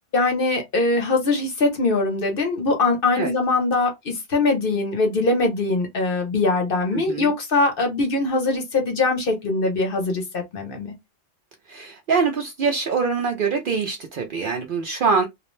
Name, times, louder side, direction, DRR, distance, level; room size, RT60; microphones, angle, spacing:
voice 1, 0.1-10.9, left 3 dB, 55° left, 0.8 m, -22 dB
voice 2, 6.9-7.3 11.7-15.3, right 5 dB, 60° right, 0.6 m, -24 dB
2.5 x 2.0 x 3.0 m
omnidirectional pair, 1.3 m